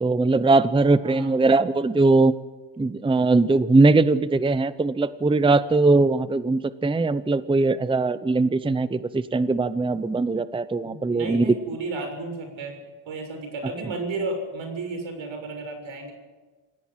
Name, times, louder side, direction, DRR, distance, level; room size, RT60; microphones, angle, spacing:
voice 1, 0.0-2.3 2.8-11.5, right 3 dB, 10° right, 14 dB, 0.6 m, -20 dB
voice 2, 1.0-1.3 10.8-16.1, right 3 dB, 85° right, 5 dB, 6.9 m, -33 dB
27.5 x 17.0 x 7.5 m, 1.3 s
wide cardioid pair, 165°, 45 cm